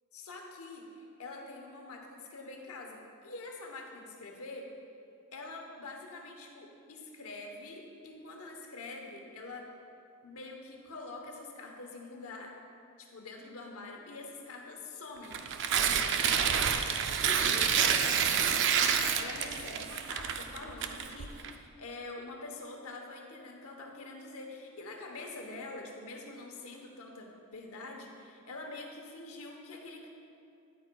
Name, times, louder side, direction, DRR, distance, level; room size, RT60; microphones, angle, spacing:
voice 1, 0.1-4.7 5.3-9.7 10.2-12.5 13.0-15.4 17.2-18.2 18.5-30.1, left 2 dB, 70° left, 1 dB, 1.0 m, -45 dB
Tearing, 15.2-21.5, right 7 dB, 55° right, 0.4 m, -28 dB
9.5 x 8.6 x 2.3 m, 2.5 s
head